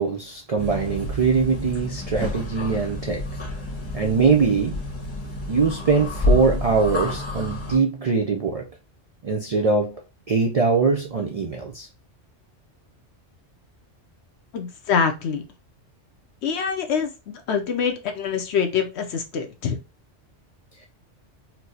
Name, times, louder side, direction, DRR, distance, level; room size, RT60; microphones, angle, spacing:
voice 1, 0.0-3.2 3.9-4.8 5.5-8.7 9.2-10.0 10.3-11.9, right 4 dB, 70° right, 0.3 m, -22 dB
sound 1, 0.6-7.8, left 2 dB, 10° left, 1.1 m, -29 dB
voice 2, 14.5-15.4 16.4-19.8, left 6 dB, 70° left, 0.8 m, -25 dB
4.3 x 2.0 x 2.6 m
omnidirectional pair, 1.2 m